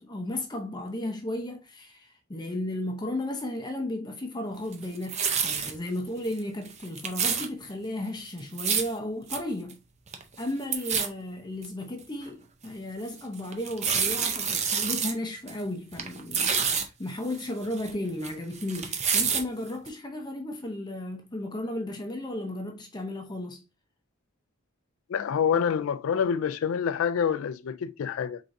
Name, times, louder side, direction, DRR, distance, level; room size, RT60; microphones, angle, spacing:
voice 1, 0.0-9.8 10.4-23.6, left 1 dB, 20° left, 0.6 m, -34 dB
sound 1, 4.7-5.7 6.2-6.4 6.7-7.5 8.4-8.9 9.3-9.4 9.7-9.8 10.1-10.4 10.7-11.1 11.6-11.7 12.3-12.4 13.5-15.1 15.5-15.6 15.9-16.8 17.3-18.3 18.6-19.4 19.9-20.0, right 6 dB, 30° right, 0.6 m, -28 dB
voice 2, 25.1-28.4, left 7 dB, 70° left, 0.3 m, -27 dB
4.5 x 3.7 x 2.6 m
head